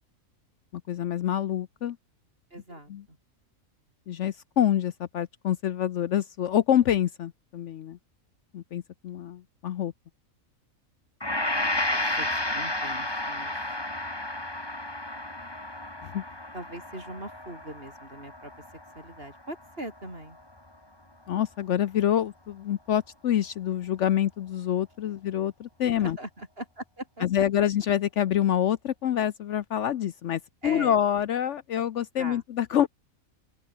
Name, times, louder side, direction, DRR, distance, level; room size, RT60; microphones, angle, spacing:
voice 1, 0.9-2.0 2.9-3.0 4.1-8.0 8.5-9.9 16.0-16.2 21.3-26.2 27.2-32.9, left 10 dB, 65° left, 0.9 m, -26 dB
voice 2, 2.5-3.2 11.9-13.5 16.5-20.4 26.0-27.2 30.6-31.0 32.2-32.4, right 1 dB, 45° right, 8.1 m, -41 dB
Gong, 11.2-19.6 20.0-20.1, left 1 dB, 15° left, 2.7 m, -32 dB
open air
omnidirectional pair, 1.4 m